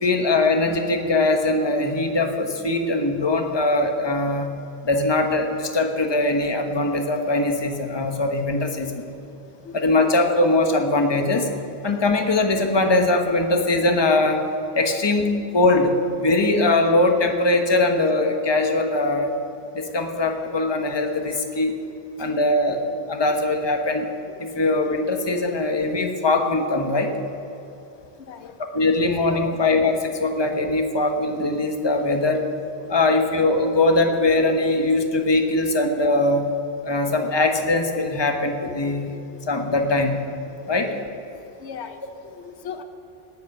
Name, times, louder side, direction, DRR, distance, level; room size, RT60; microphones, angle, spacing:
voice 1, 0.0-4.5 4.8-9.0 9.7-11.5 11.8-14.4 14.7-15.9 16.2-19.4 19.7-21.7 22.2-22.8 23.1-24.0 24.4-27.1 28.7-32.4 32.9-36.5 36.8-39.2 39.5-40.2 40.7-40.9, left 2 dB, 25° left, 4 dB, 1.0 m, -21 dB
voice 2, 9.6-10.1 22.2-22.3 22.7-22.8 24.9-25.0 28.3-28.9 29.3-29.6 32.0-32.1 32.9-33.0 38.3-38.4 40.9-41.1 41.4-42.8, left 7 dB, 85° left, 8 dB, 1.1 m, -40 dB
19.0 x 8.3 x 5.4 m, 2.8 s
omnidirectional pair, 1.1 m